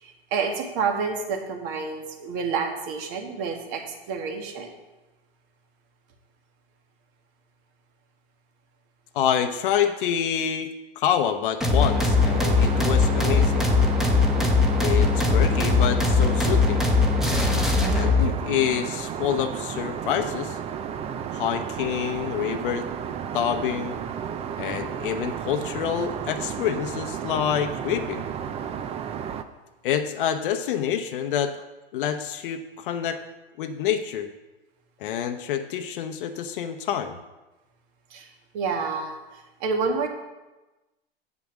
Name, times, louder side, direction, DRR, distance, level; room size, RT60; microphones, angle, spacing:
voice 1, 0.0-3.8 4.1-4.7 38.1-38.3 38.5-40.1, right 5 dB, 45° right, 3 dB, 1.9 m, -29 dB
voice 2, 9.1-10.7 11.0-13.7 14.8-16.9 17.9-20.6 21.3-22.9 23.3-23.9 24.6-28.3 29.8-31.6 31.9-33.2 33.6-34.3 35.0-37.2, left 9 dB, 55° left, 7 dB, 0.8 m, -27 dB
sound 1, 11.6-18.3, left 3 dB, ahead, 1.2 m, -20 dB
Aircraft, 11.9-29.4, right 8 dB, 20° right, 0.5 m, -33 dB
7.7 x 6.1 x 7.3 m, 1.1 s
hypercardioid pair, 115°, 30 cm